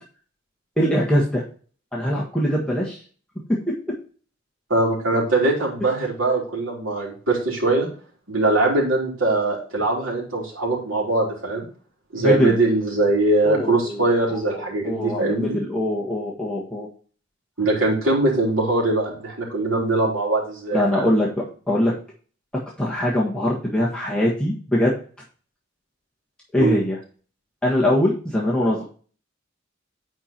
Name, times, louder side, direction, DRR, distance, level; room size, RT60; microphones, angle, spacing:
voice 1, 0.8-1.4 1.9-3.0 12.1-12.6 13.4-14.0 14.3-14.4 14.7-16.9 20.7-21.9 22.8-24.9 26.5-27.0 27.6-28.8, left 1 dB, 5° left, -6 dB, 1.5 m, -22 dB
voice 2, 4.7-7.9 8.3-11.7 12.1-15.6 17.6-21.1 26.6-26.8, right 2 dB, 90° right, -3 dB, 3.6 m, -21 dB
9.8 x 4.5 x 4.3 m, 0.42 s
head